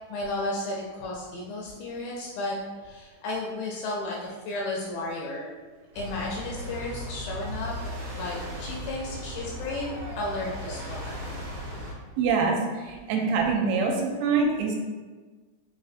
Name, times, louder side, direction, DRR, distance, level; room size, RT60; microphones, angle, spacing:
voice 1, 0.1-2.6 2.8-5.5 5.9-7.7 8.1-11.2, left 2 dB, 80° left, -3 dB, 2.0 m, -33 dB
sound 1, 5.9-11.9, equal, 55° right, 1.4 m, -36 dB
voice 2, 12.2-14.8, right 4 dB, 85° right, 1 dB, 2.4 m, -25 dB
5.7 x 2.6 x 2.4 m, 1.4 s
omnidirectional pair, 4.3 m